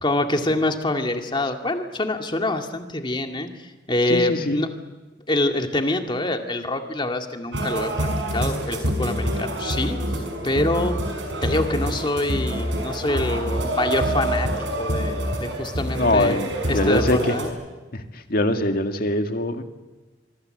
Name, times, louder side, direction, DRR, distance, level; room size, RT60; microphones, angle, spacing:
voice 1, 0.0-4.7 5.3-10.0 10.4-11.0 11.4-14.5 14.8-16.4 16.7-17.5, left 2 dB, 25° left, 5 dB, 2.2 m, -25 dB
voice 2, 4.1-4.6 15.9-17.2 17.9-18.0 18.3-19.6, left 1 dB, 55° left, 6 dB, 1.9 m, -22 dB
sound 1, 7.5-17.5, equal, 90° right, 6.0 m, -26 dB
25.0 x 24.5 x 7.9 m, 1.2 s
head